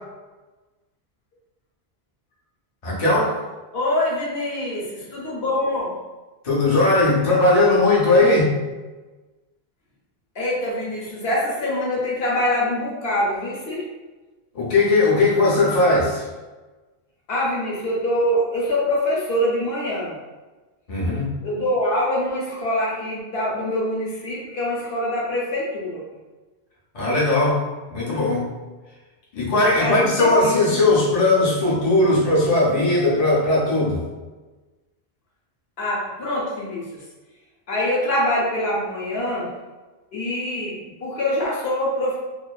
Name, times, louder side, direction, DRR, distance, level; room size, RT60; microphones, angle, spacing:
voice 1, 2.8-3.3 6.4-8.6 14.5-16.2 20.9-21.3 26.9-27.6 27.9-28.5 29.3-34.0, left 2 dB, 40° left, -6 dB, 0.6 m, -18 dB
voice 2, 3.7-5.9 8.2-8.3 10.4-13.9 17.3-20.1 21.4-26.0 29.6-30.8 35.8-36.9 37.7-39.5 40.1-42.1, left 1 dB, 70° left, -5 dB, 1.0 m, -24 dB
2.4 x 2.4 x 2.2 m, 1.2 s
omnidirectional pair, 1.1 m